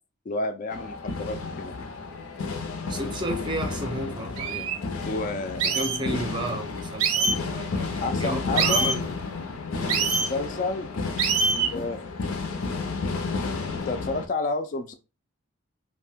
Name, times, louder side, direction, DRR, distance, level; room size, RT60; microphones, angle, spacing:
voice 1, 0.3-1.8 4.6-4.7 5.0-6.2 8.0-8.9 10.0-10.9 11.4-12.0 13.7-14.9, left 2 dB, 40° left, 0.3 m, -31 dB
sound 1, 0.7-14.3, left 4 dB, 85° left, 0.5 m, -32 dB
voice 2, 2.9-4.7 5.6-9.0 9.7-10.1, right 1 dB, 20° right, 0.5 m, -33 dB
sound 2, 3.9-4.0 4.4-4.7 5.6-6.0 7.0-7.4 8.5-9.0 9.9-10.3 11.2-11.7, right 4 dB, 85° right, 0.5 m, -24 dB
2.6 x 2.1 x 3.4 m
head